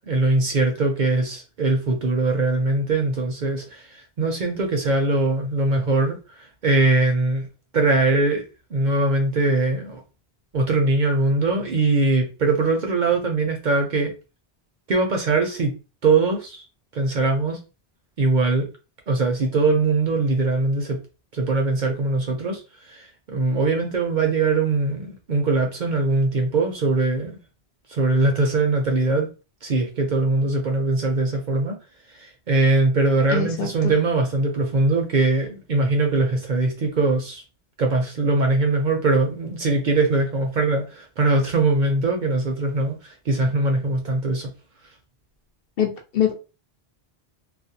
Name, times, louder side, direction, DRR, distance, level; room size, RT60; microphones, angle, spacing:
voice 1, 0.1-7.5 7.7-8.4 8.7-10.0 10.5-14.1 14.9-15.7 16.0-16.6 16.9-17.6 18.2-18.6 19.1-21.0 21.3-22.6 22.9-27.4 27.9-29.3 29.6-31.8 32.1-37.4 37.8-44.5, right 3 dB, 55° right, 0.6 m, -21 dB
voice 2, 33.3-33.9 45.8-46.3, left 9 dB, 65° left, 0.8 m, -24 dB
2.4 x 2.0 x 2.7 m
omnidirectional pair, 1.1 m